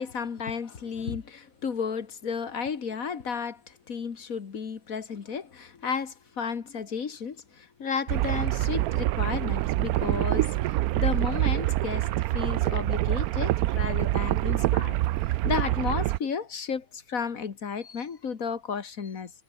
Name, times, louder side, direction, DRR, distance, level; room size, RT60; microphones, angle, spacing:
voice 1, 0.0-19.4, left 6 dB, 50° left, 1.9 m, -33 dB
sound 1, 8.1-16.2, right 15 dB, 75° right, 0.8 m, -26 dB
omnidirectional pair, 2.0 m